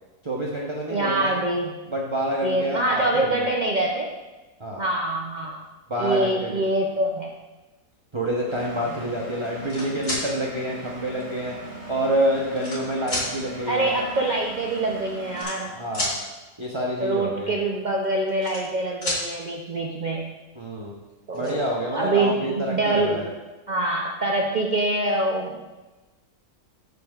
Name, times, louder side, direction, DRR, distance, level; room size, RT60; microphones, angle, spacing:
voice 1, 0.2-1.3 1.9-3.4 4.6-4.9 5.9-6.6 8.1-11.5 11.9-14.0 15.6-16.2 16.6-17.6 20.5-21.0 21.3-23.3, equal, 25° right, -3 dB, 0.6 m, -27 dB
voice 2, 0.9-1.7 2.4-4.1 4.8-5.6 6.0-7.3 13.7-15.8 17.0-20.3 21.3-21.6 21.9-23.3 23.7-25.6, right 2 dB, 70° right, 0 dB, 0.4 m, -25 dB
Engine, 8.5-15.4, right 2 dB, 50° right, 2.1 m, -39 dB
sound 1, 9.4-10.2 11.2-11.3 12.1-12.8 13.1-13.3 14.4-14.5 14.7-14.9 15.3-16.1 18.0-18.8 19.0-19.2 20.7-20.8 21.1-21.5, left 1 dB, 45° left, 3.1 m, -30 dB
12.5 x 5.2 x 2.4 m, 1.2 s
omnidirectional pair, 1.6 m